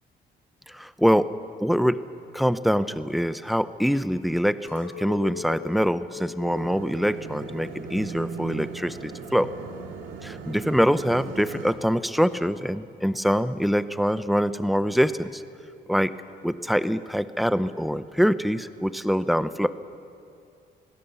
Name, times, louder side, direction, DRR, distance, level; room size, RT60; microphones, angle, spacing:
voice 1, 0.7-1.3 1.6-2.0 2.3-9.5 10.2-15.4 15.9-16.1 16.4-19.7, equal, ahead, 13 dB, 0.8 m, -24 dB
Chink clink, 4.7-9.1 9.4-10.0, left 11 dB, 70° left, 3.7 m, -42 dB
sound 1, 6.4-11.7, right 5 dB, 90° right, 2.1 m, -38 dB
25.0 x 17.0 x 7.0 m, 2.5 s
cardioid pair, 90°, 20 cm